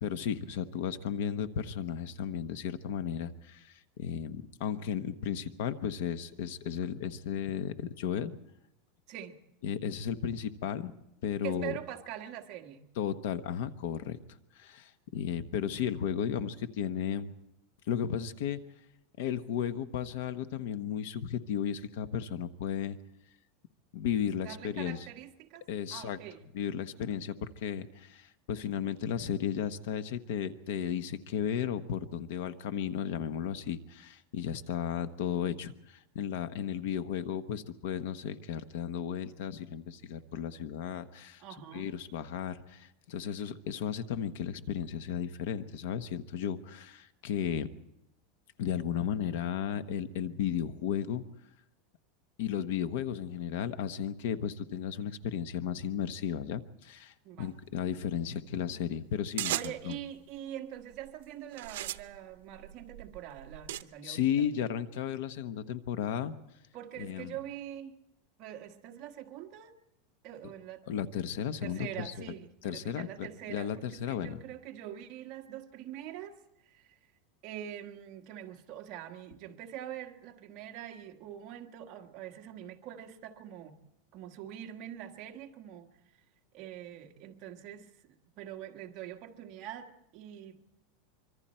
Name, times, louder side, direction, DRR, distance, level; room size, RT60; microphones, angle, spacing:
voice 1, 0.0-8.4 9.6-10.9 11.2-11.7 13.0-14.2 14.6-17.3 17.9-18.6 19.2-23.0 23.9-25.0 25.7-26.2 26.5-41.4 41.7-47.7 48.6-51.2 52.4-60.0 64.0-66.3 67.0-67.3 70.9-72.1 72.6-74.4, left 8 dB, 65° left, 1.1 m, -34 dB
voice 2, 11.4-12.8 24.4-26.4 41.4-41.9 57.2-57.6 59.5-64.5 66.7-68.0 68.4-69.7 70.2-70.9 71.6-77.0 77.4-83.8 84.1-85.9 86.5-90.6, right 11 dB, 40° right, 1.5 m, -44 dB
sound 1, 59.4-60.0 60.8-61.1 61.5-63.8, right 13 dB, 80° right, 0.7 m, -37 dB
25.5 x 24.0 x 4.4 m
supercardioid pair, 170°, 0 cm